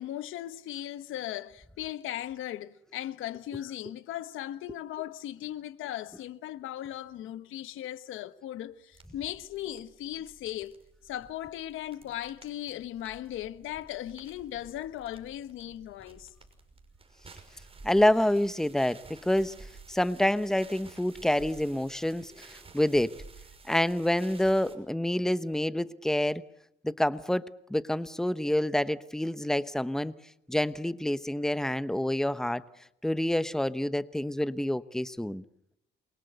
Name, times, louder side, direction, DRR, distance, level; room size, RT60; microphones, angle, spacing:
voice 1, 0.0-10.8 11.0-16.3, left 12 dB, 85° left, 1.3 m, -38 dB
sound 1, 8.9-24.8, right 3 dB, 30° right, 6.0 m, -53 dB
voice 2, 17.8-23.1 23.7-26.4 26.8-30.1 30.5-32.6 33.0-35.4, left 1 dB, ahead, 1.0 m, -27 dB
28.5 x 23.0 x 8.1 m
cardioid pair, 90°, 20 cm